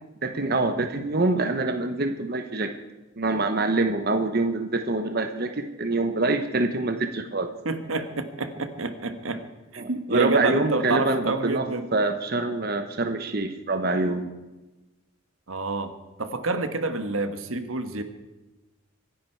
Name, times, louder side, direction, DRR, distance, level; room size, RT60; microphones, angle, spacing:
voice 1, 0.2-2.7 3.2-7.5 9.8-11.7 11.9-14.3, right 2 dB, 50° right, 6 dB, 1.0 m, -25 dB
voice 2, 7.6-9.4 9.7-11.9 15.5-15.9 16.2-18.0, right 3 dB, 85° right, 9 dB, 1.4 m, -28 dB
25.0 x 10.5 x 4.6 m, 1.1 s
head